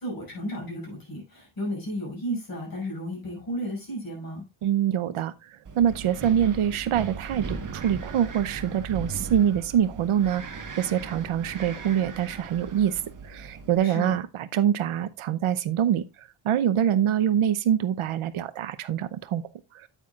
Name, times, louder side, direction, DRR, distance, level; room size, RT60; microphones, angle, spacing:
voice 1, 0.0-4.4 13.8-14.2, equal, 45° left, 6.2 m, -33 dB
voice 2, 4.6-5.3 5.8-13.0 13.3-16.1 16.4-19.4, right 10 dB, 75° right, 0.8 m, -25 dB
Wind, 5.6-13.8, right 4 dB, 40° right, 1.4 m, -38 dB
9.3 x 9.0 x 2.4 m
wide cardioid pair, 150°, 50 cm